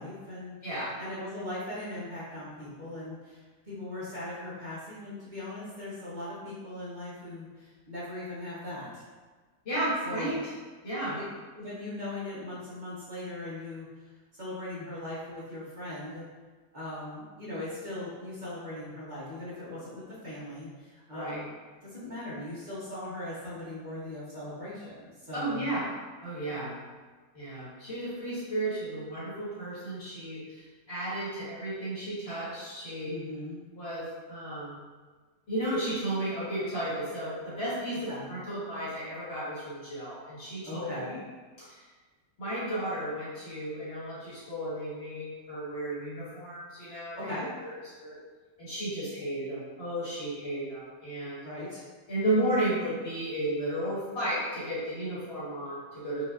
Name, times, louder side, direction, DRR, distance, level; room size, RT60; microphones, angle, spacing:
voice 1, 0.0-0.6 1.0-9.1 10.0-10.4 11.1-11.2 11.5-13.9 14.3-16.2 16.7-21.5 21.8-25.6 33.0-33.6 38.1-38.3 40.6-41.2 47.2-47.5 51.4-51.8, left 1 dB, 30° right, -10 dB, 1.0 m, -39 dB
voice 2, 0.6-0.9 9.6-10.4 10.8-11.2 21.1-21.4 25.3-25.9 26.2-26.7 27.3-33.2 33.7-34.8 35.5-41.1 41.6-41.8 42.4-47.3 47.6-47.7 48.0-48.2 48.6-51.4 52.1-56.2, right 1 dB, 40° left, -11 dB, 1.6 m, -33 dB
4.7 x 2.7 x 2.5 m, 1.4 s
omnidirectional pair, 1.8 m